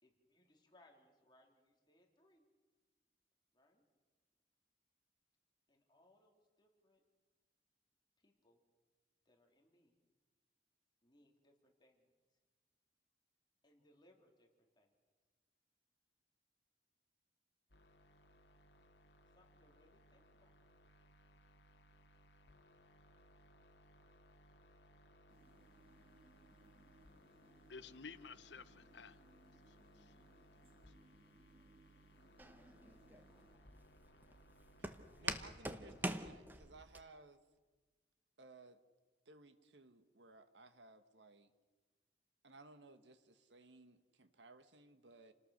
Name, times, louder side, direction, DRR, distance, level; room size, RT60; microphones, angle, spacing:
voice 1, 0.0-2.4 3.5-3.8 5.7-7.0 8.2-8.6 9.3-10.0 11.0-12.1 13.6-14.5 14.7-14.9 19.3-20.6 28.7-29.1, left 1 dB, 25° left, 1 dB, 3.5 m, -71 dB
sound 1, 17.7-36.2, equal, 70° left, 2.1 m, -66 dB
sound 2, 25.3-33.6, right 1 dB, 30° right, 2.6 m, -68 dB
voice 2, 27.7-29.2 29.7-30.1, left 5 dB, 85° left, 14 dB, 1.0 m, -54 dB
Walk footsteps, 32.4-37.0, right 1 dB, 10° right, 1.1 m, -44 dB
voice 3, 34.8-37.4 38.4-38.8 39.2-41.5 42.4-45.3, right 3 dB, 90° right, 9 dB, 1.5 m, -60 dB
29.0 x 19.5 x 6.6 m, 1.3 s
head